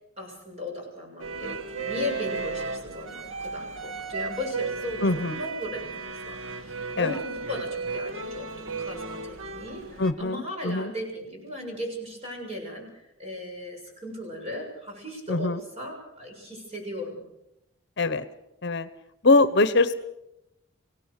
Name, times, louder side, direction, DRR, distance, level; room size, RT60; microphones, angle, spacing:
voice 1, 0.2-17.2, left 1 dB, 30° right, 0 dB, 7.0 m, -37 dB
sound 1, 1.2-10.1, right 4 dB, 75° right, 1.7 m, -35 dB
voice 2, 5.0-5.4 7.0-7.1 10.0-10.9 15.3-15.6 18.0-18.2 18.6-18.9 19.2-19.9, left 2 dB, 55° left, 13 dB, 0.9 m, -22 dB
25.0 x 17.5 x 6.6 m, 0.88 s
head